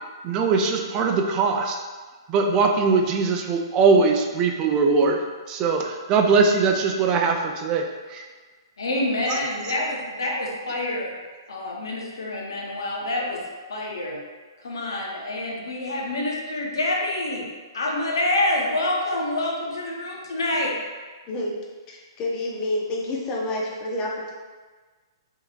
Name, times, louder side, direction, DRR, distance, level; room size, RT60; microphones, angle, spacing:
voice 1, 0.2-1.8 2.3-5.2 5.5-7.8 8.1-8.2, right 4 dB, 30° right, 3 dB, 0.4 m, -21 dB
voice 2, 8.8-11.1 11.5-13.4 13.7-14.2 14.6-17.5 17.7-20.7, left 1 dB, 75° left, -2 dB, 0.8 m, -27 dB
voice 3, 21.9-24.3, left 1 dB, 30° left, -2 dB, 0.7 m, -28 dB
3.6 x 3.0 x 2.3 m, 1.4 s
hypercardioid pair, 125°, 2 cm